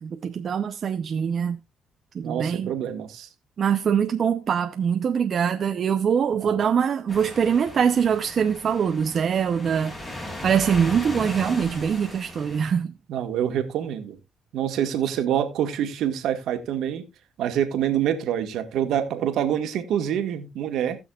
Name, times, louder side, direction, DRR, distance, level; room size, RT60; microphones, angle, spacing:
voice 1, 0.0-1.6 2.1-2.7 3.6-10.0 10.4-12.9, right 7 dB, 55° right, 0.7 m, -23 dB
voice 2, 2.2-3.3 6.4-6.6 13.1-14.2 14.5-17.1 17.4-21.0, right 10 dB, 80° right, 1.6 m, -26 dB
sound 1, 7.1-12.6, left 1 dB, 20° left, 5.8 m, -37 dB
19.0 x 6.3 x 2.4 m
cardioid pair, 90°, 0 cm